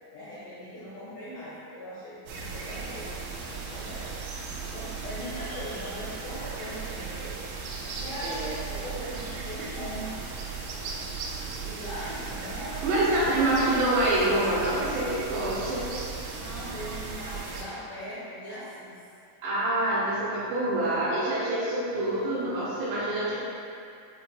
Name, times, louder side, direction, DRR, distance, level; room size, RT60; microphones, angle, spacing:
voice 1, 0.1-3.2 3.6-4.2 4.6-7.4 8.0-10.2 11.6-12.9 13.2-13.7 16.3-19.0 20.8-21.1, equal, 70° left, -11 dB, 2.2 m, -40 dB
sound 1, 2.3-17.7, right 5 dB, 90° right, 3.7 m, -37 dB
voice 2, 12.8-15.9 19.4-23.3, right 1 dB, 75° right, -9 dB, 2.8 m, -26 dB
9.5 x 4.8 x 2.3 m, 2.5 s
omnidirectional pair, 5.9 m